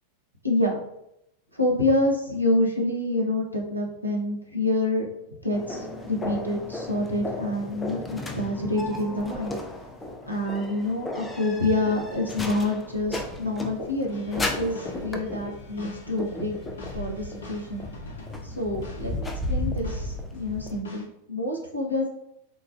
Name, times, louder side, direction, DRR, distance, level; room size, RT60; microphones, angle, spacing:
voice 1, 0.4-0.8 1.5-5.1 5.4-9.5 10.3-16.5 16.9-17.8 18.4-22.1, left 1 dB, 90° right, -1 dB, 0.6 m, -27 dB
sound 1, 5.5-20.8, left 1 dB, 15° left, 0.4 m, -35 dB
sound 2, 14.1-19.5 19.8-21.1, left 3 dB, 65° left, 0.6 m, -44 dB
3.9 x 2.3 x 2.4 m, 0.82 s
figure-of-eight pair, 90°, 0 cm